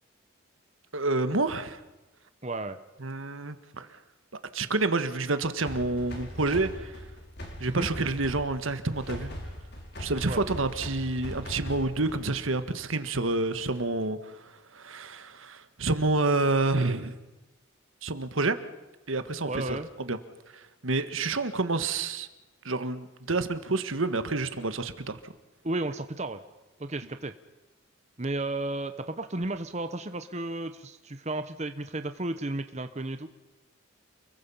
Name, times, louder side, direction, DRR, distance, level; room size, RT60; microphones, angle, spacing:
voice 1, 0.9-1.8 3.0-3.9 4.5-7.0 7.6-9.3 10.0-17.2 18.0-18.6 19.1-19.8 20.1-20.2 20.8-22.3 22.7-25.3, right 3 dB, 75° right, 10 dB, 1.6 m, -28 dB
voice 2, 2.4-2.8 7.7-7.9 10.3-10.4 19.5-19.9 25.6-26.4 26.8-27.3 28.2-33.3, right 2 dB, 35° right, 9 dB, 1.0 m, -33 dB
sound 1, 5.7-12.4, equal, 50° left, 4.9 m, -40 dB
29.5 x 22.5 x 5.7 m, 1.1 s
head